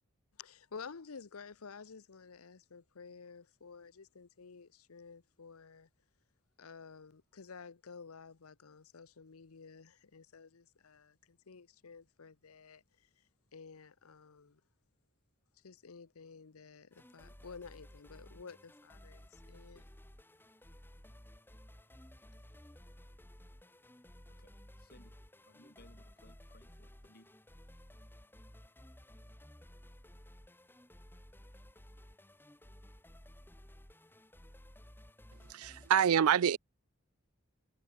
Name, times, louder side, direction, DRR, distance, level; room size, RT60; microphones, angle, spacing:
voice 1, 0.4-5.9 6.6-12.8 13.5-14.6 15.6-19.8, left 5 dB, 90° left, 0.8 m, -52 dB
sound 1, 16.9-35.9, left 1 dB, 10° left, 1.4 m, -56 dB
voice 2, 24.3-27.4 27.7-27.8, left 1 dB, 45° left, 6.0 m, -63 dB
voice 3, 35.5-36.6, right 8 dB, 90° right, 0.4 m, -26 dB
head